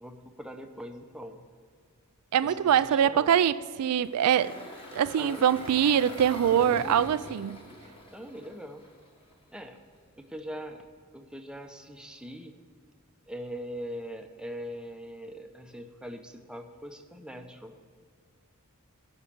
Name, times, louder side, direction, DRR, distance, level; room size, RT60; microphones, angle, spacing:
voice 1, 0.0-1.4 2.4-3.3 5.2-5.4 8.1-8.8 9.5-9.8 10.2-10.9 11.1-12.6 13.3-17.8, equal, 5° right, 0.7 m, -41 dB
voice 2, 2.3-4.6 4.9-7.6, right 9 dB, 80° right, 0.3 m, -24 dB
Engine, 4.0-9.3, equal, 25° left, 1.5 m, -44 dB
11.5 x 5.7 x 8.4 m
head